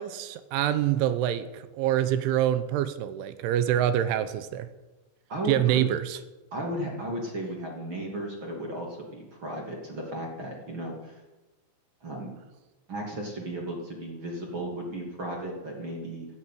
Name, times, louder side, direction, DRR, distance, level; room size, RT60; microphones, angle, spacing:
voice 1, 0.0-4.7 5.5-6.2, right 11 dB, 80° right, 12 dB, 3.1 m, -26 dB
voice 2, 5.3-5.8 6.5-11.2 12.0-12.3 12.9-16.3, right 1 dB, 35° right, 0 dB, 2.3 m, -35 dB
16.0 x 8.1 x 9.1 m, 1.1 s
omnidirectional pair, 5.8 m